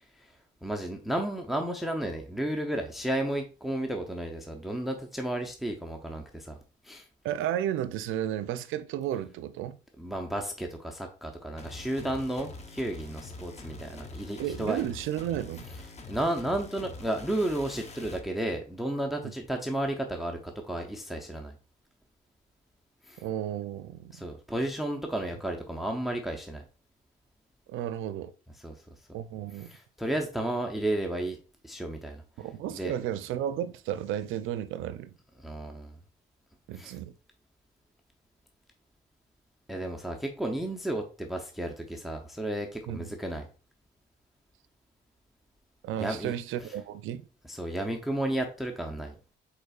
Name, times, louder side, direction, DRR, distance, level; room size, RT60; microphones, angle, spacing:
voice 1, 0.6-6.6 6.8-7.1 10.0-14.8 16.1-21.5 23.1-23.2 24.1-26.6 28.6-28.7 29.6-31.4 31.6-32.2 32.7-32.9 35.4-36.0 36.7-37.0 39.7-43.5 46.0-46.3 46.6-46.7 47.5-49.2, right 1 dB, ahead, 0.6 m, -33 dB
voice 2, 7.2-9.8 14.4-15.7 19.2-19.3 23.2-24.3 27.7-28.3 29.1-29.7 32.4-35.2 36.7-37.1 42.9-43.1 45.8-47.3, right 11 dB, 85° right, 0.4 m, -33 dB
sound 1, 11.6-18.3, left 3 dB, 35° left, 0.8 m, -45 dB
5.3 x 4.2 x 2.3 m
cardioid pair, 90°, 20 cm